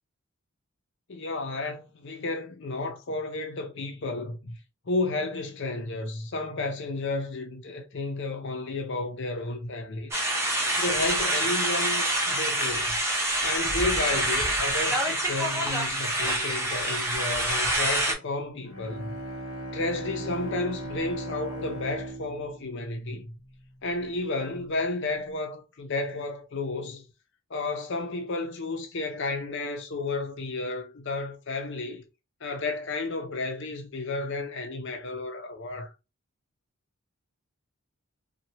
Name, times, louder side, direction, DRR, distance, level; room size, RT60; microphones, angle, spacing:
voice 1, 1.1-4.5 4.9-10.2 10.8-13.0 13.4-19.1 19.7-23.3 23.8-27.1 27.5-32.1 32.4-35.9, left 2 dB, 55° left, 0.6 m, -32 dB
sound 1, 10.1-18.1, right 1 dB, 10° right, 0.6 m, -26 dB
Bowed string instrument, 18.6-23.7, right 1 dB, 70° left, 1.0 m, -38 dB
3.0 x 2.3 x 2.8 m
head